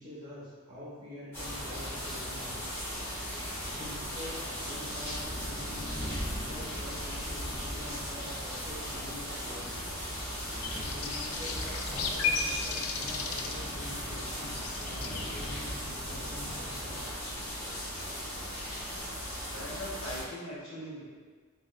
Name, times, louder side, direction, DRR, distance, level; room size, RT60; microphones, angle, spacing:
voice 1, 0.0-2.6 3.0-9.7 10.2-17.0, left 1 dB, 20° right, -10 dB, 1.1 m, -46 dB
sound 1, 1.3-20.2, equal, 10° left, 0.9 m, -37 dB
sound 2, 10.6-15.5, left 5 dB, 80° left, 0.3 m, -35 dB
voice 2, 19.5-21.0, equal, 60° left, -8 dB, 1.0 m, -40 dB
3.7 x 2.5 x 2.2 m, 1.5 s
head